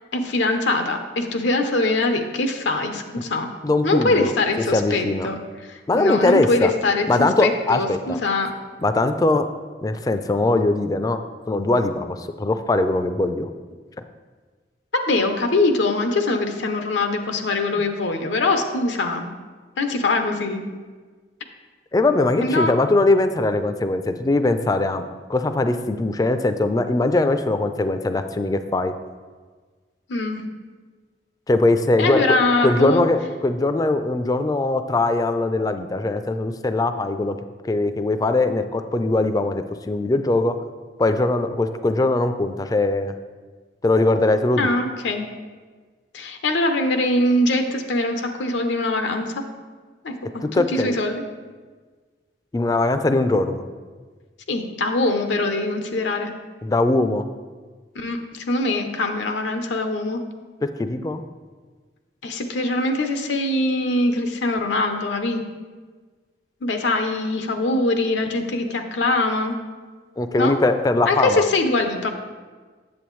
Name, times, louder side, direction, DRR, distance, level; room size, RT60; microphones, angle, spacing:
voice 1, 0.1-3.5 3.8-8.5 14.9-19.3 19.8-20.6 22.4-22.7 30.1-30.4 32.0-33.0 44.6-45.3 46.1-49.4 50.0-51.2 54.5-56.3 58.0-60.2 62.2-65.4 66.6-69.6 70.4-70.5 71.1-72.1, left 2 dB, 90° left, 6 dB, 0.7 m, -23 dB
voice 2, 3.6-4.3 4.7-5.3 5.9-6.7 7.1-8.2 8.8-9.4 9.8-11.2 11.5-13.5 21.9-28.9 31.5-32.4 32.6-37.4 37.6-40.5 41.0-43.1 43.8-44.7 50.4-51.0 52.5-53.7 56.6-57.3 60.8-61.2 70.2-71.4, left 2 dB, 20° left, 9 dB, 0.3 m, -21 dB
8.5 x 7.3 x 3.1 m, 1.4 s
head